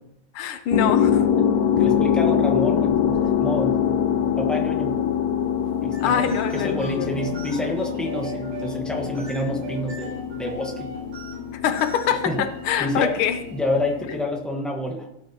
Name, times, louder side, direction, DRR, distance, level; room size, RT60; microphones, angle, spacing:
voice 1, 0.3-1.3 6.0-7.2 11.6-13.4, left 8 dB, 90° left, 9 dB, 1.6 m, -24 dB
sound 1, 0.7-14.2, left 8 dB, 70° left, 0.9 m, -24 dB
voice 2, 1.8-5.0 5.8-10.9 12.1-12.4 12.8-13.2 13.5-15.1, left 1 dB, ahead, 0 dB, 0.7 m, -29 dB
sound 2, 5.8-14.1, right 3 dB, 85° right, 3.2 m, -40 dB
16.0 x 7.5 x 2.9 m, 0.83 s
omnidirectional pair, 2.4 m